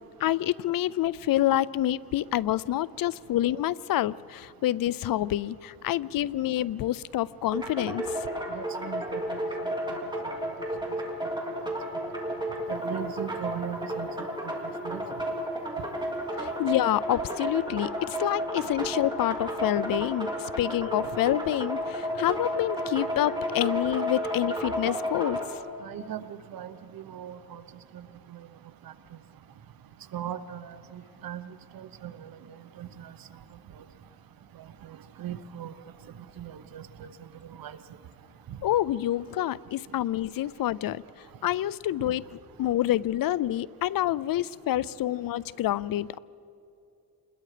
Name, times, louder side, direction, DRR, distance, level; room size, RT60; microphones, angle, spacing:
voice 1, 0.2-8.3 16.4-25.6 38.6-41.0 41.4-46.2, left 13 dB, 75° left, 20 dB, 0.5 m, -27 dB
sound 1, 7.5-25.5, equal, 15° right, 3.5 m, -32 dB
voice 2, 8.5-9.4 12.7-14.1 14.4-14.5 14.8-15.0 25.8-27.6 27.9-28.0 30.1-31.5 31.7-32.3 32.8-33.1 34.8-35.7 36.4-37.1 37.6-37.8 38.5-38.6, right 10 dB, 80° right, 12 dB, 1.0 m, -38 dB
28.5 x 21.0 x 5.0 m, 2.7 s
cardioid pair, 110°, 35 cm